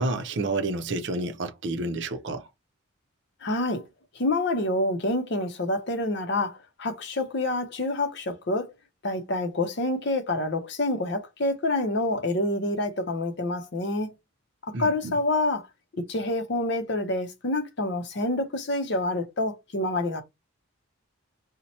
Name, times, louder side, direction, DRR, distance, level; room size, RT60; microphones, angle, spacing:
voice 1, 0.0-2.5 14.7-15.2, right 2 dB, 55° right, 0.5 m, -29 dB
voice 2, 3.4-3.8 4.1-8.7 9.0-14.1 14.8-15.6 16.1-20.2, left 2 dB, 55° left, 0.7 m, -27 dB
2.8 x 2.1 x 4.1 m
head